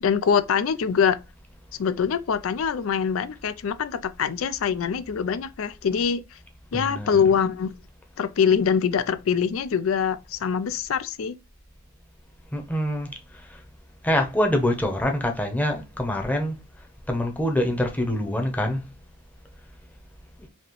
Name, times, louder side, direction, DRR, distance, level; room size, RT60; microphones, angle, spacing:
voice 1, 0.0-1.2 1.8-6.2 6.7-7.7 8.2-11.4, left 7 dB, 75° left, 0.4 m, -24 dB
voice 2, 6.7-7.2 12.5-13.1 13.5-13.6 14.0-16.5 17.1-18.8, left 1 dB, 10° left, 0.8 m, -25 dB
4.2 x 2.9 x 3.0 m
head